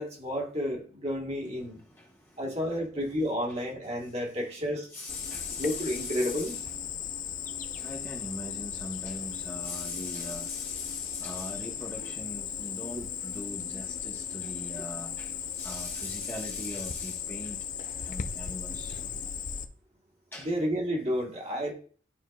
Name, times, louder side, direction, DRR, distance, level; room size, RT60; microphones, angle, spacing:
voice 1, 0.0-1.8 2.4-4.9 5.6-6.6 20.4-21.7, equal, 30° right, 1.4 m, -31 dB
voice 2, 4.9-6.6 7.8-17.6 18.1-19.0 20.3-20.5, left 1 dB, 10° left, 1.1 m, -41 dB
Cricket, 5.1-19.6, left 8 dB, 40° left, 0.5 m, -37 dB
11.5 x 4.5 x 2.3 m
head